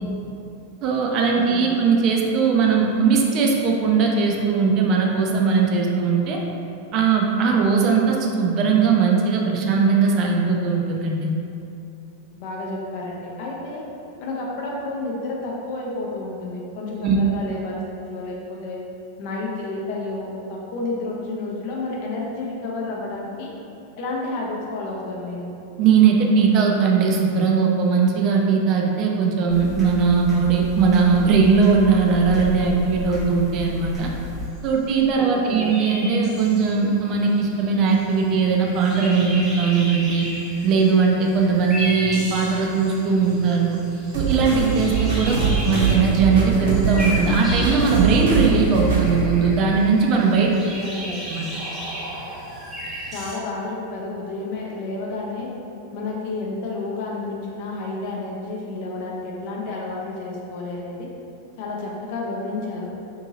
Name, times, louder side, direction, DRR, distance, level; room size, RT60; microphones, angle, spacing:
voice 1, 0.8-6.4 6.9-11.3 17.0-17.2 25.8-34.1 34.6-40.3 40.6-43.8 44.1-45.4 45.6-50.5 51.1-51.4, right 5 dB, 40° right, 0 dB, 0.3 m, -19 dB
voice 2, 1.3-1.8 12.3-13.9 14.2-18.8 19.2-23.5 24.0-25.5 35.2-35.7 45.3-45.6 50.4-51.2 53.1-55.5 55.9-61.1 61.6-62.9, left 2 dB, 45° left, -2 dB, 0.5 m, -31 dB
sound 1, 29.5-34.5, equal, 20° left, 0.8 m, -32 dB
sound 2, 34.6-34.7 34.8-34.9 35.1-53.4, equal, 15° right, 0.9 m, -35 dB
sound 3, 44.1-49.2, right 4 dB, 60° right, 0.7 m, -23 dB
2.7 x 2.6 x 2.6 m, 2.7 s
figure-of-eight pair, 90°, 0 cm